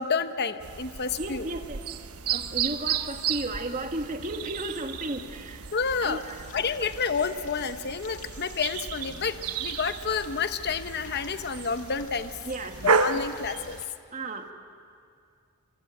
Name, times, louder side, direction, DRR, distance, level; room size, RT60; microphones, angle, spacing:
voice 1, 0.0-1.5 5.7-6.2 6.5-12.3 12.8-13.8, left 5 dB, 50° left, 10 dB, 0.9 m, -29 dB
sound 1, 0.6-13.8, right 6 dB, 90° right, 1.1 m, -33 dB
voice 2, 1.2-1.8 2.3-5.7 6.0-6.4 12.5-12.8 14.1-14.5, right 1 dB, 35° right, 4 dB, 1.8 m, -34 dB
sound 2, 5.8-13.9, left 7 dB, 75° left, 1.9 m, -52 dB
25.5 x 24.5 x 9.2 m, 2.3 s
head